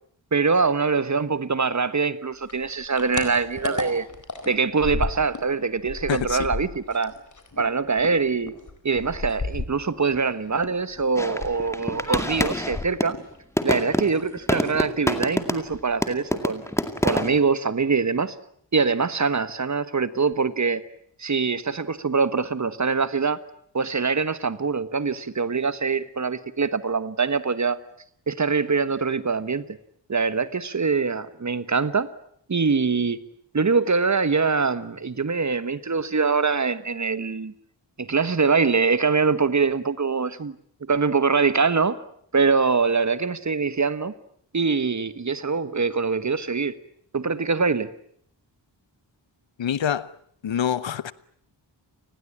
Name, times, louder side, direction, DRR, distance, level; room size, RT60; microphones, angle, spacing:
voice 1, 0.3-4.1 4.5-7.1 7.6-8.5 8.8-13.2 13.6-16.6 17.0-18.3 18.7-20.8 21.2-23.4 23.7-27.8 28.3-29.6 30.1-32.1 32.5-33.2 33.5-37.5 38.0-40.6 40.9-42.0 42.3-44.1 44.5-46.7 47.1-47.9, right 4 dB, 40° right, 1.3 m, -23 dB
sound 1, 2.4-5.5 5.8-10.3 10.6-13.4 13.6-14.3 14.6-14.9 15.2-15.3 15.6-16.1, left 3 dB, 40° left, 4.4 m, -34 dB
voice 2, 6.1-6.5 49.6-50.1 50.4-51.1, left 9 dB, 80° left, 1.0 m, -26 dB
sound 2, 11.2-13.2 13.6-15.8 16.0-17.4, left 1 dB, 5° left, 2.2 m, -26 dB
29.5 x 20.0 x 8.7 m
wide cardioid pair, 130°, 44 cm